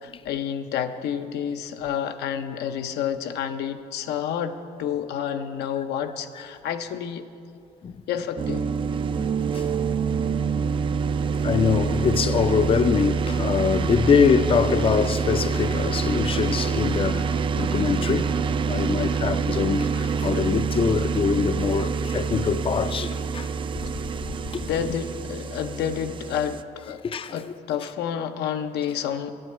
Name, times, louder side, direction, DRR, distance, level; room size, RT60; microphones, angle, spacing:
voice 1, 0.0-7.2 8.1-8.6 24.6-27.0 27.3-29.3, left 8 dB, 75° left, 0.7 m, -29 dB
sound 1, 8.4-26.6, right 5 dB, 30° right, 0.3 m, -26 dB
voice 2, 11.4-17.3 17.6-18.3 18.7-23.5 24.3-24.9 27.0-27.4, left 6 dB, 30° left, 0.4 m, -24 dB
9.2 x 7.7 x 7.8 m
cardioid pair, 110°, 17 cm